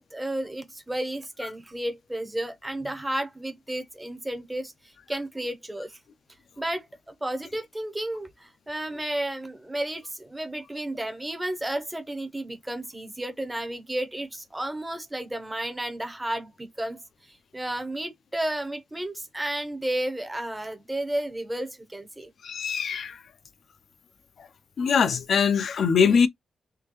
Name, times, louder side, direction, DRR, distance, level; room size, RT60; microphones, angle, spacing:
voice 1, 0.0-6.0 6.6-17.0 17.3-22.3, right 1 dB, 10° right, 0.7 m, -32 dB
voice 2, 22.4-23.2 24.8-26.3, left 6 dB, 50° left, 0.5 m, -22 dB
3.7 x 3.3 x 2.9 m
wide cardioid pair, 170°, 0 cm